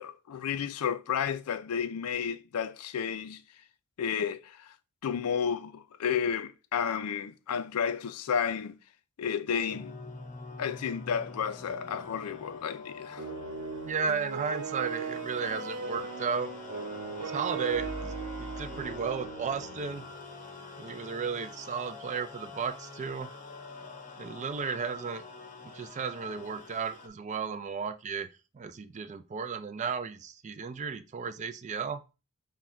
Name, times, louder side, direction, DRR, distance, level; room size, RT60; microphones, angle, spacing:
voice 1, 0.0-3.4 4.0-4.7 5.0-8.7 9.2-10.0 10.6-13.3, left 7 dB, 85° left, 0.4 m, -32 dB
sound 1, 9.7-27.1, left 3 dB, 35° left, 0.7 m, -46 dB
sound 2, 13.2-20.1, right 4 dB, 90° right, 0.9 m, -38 dB
voice 2, 13.8-16.5 17.2-18.1 18.4-20.1 20.8-23.3 24.2-25.2 25.6-28.3 28.5-32.0, right 5 dB, 35° right, 0.4 m, -34 dB
5.9 x 2.2 x 3.6 m
head